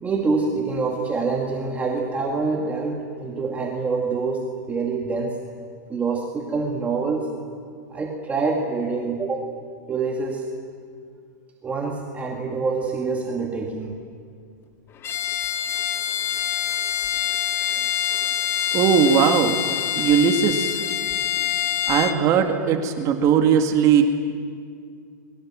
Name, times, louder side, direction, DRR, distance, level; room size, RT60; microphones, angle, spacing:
voice 1, 0.0-5.4 5.9-7.3 7.9-9.5 9.9-10.5 11.6-14.0, right 4 dB, 15° right, 0 dB, 2.2 m, -26 dB
Bowed string instrument, 15.0-22.2, left 10 dB, 25° left, 1.3 m, -25 dB
voice 2, 18.7-19.6 19.9-20.8 21.9-24.0, right 7 dB, 30° right, 4 dB, 2.1 m, -19 dB
28.5 x 22.5 x 7.6 m, 2.1 s
hypercardioid pair, 140°, 10 cm